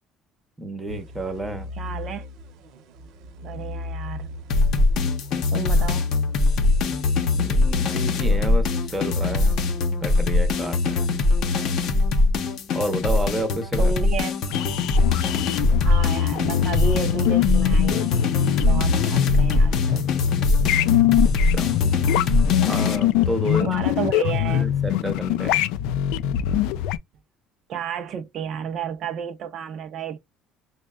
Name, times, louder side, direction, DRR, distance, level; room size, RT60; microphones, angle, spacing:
voice 1, 0.6-1.7 7.4-9.6 10.0-11.1 12.7-13.9 21.2-21.7 22.6-23.7 24.5-25.6, right 1 dB, 5° right, 0.7 m, -30 dB
sound 1, 0.9-12.7, left 2 dB, 60° right, 0.8 m, -38 dB
voice 2, 1.7-2.3 3.4-4.3 5.5-6.1 13.8-14.3 14.8-14.9 15.8-18.1 18.7-20.1 23.6-24.7 27.7-30.2, right 7 dB, 40° right, 0.4 m, -31 dB
sound 2, 4.5-23.0, left 3 dB, 45° left, 0.7 m, -22 dB
sound 3, 14.5-27.0, left 12 dB, 80° left, 0.4 m, -23 dB
6.1 x 2.1 x 2.2 m
cardioid pair, 180°, 0 cm